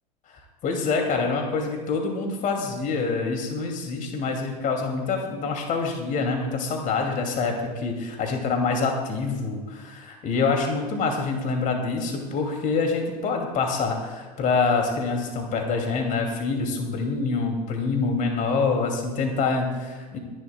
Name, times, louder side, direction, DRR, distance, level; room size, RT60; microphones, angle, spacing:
voice 1, 0.6-20.2, left 4 dB, 40° left, 3 dB, 2.6 m, -26 dB
26.0 x 11.0 x 2.3 m, 1.4 s
figure-of-eight pair, 80°, 21 cm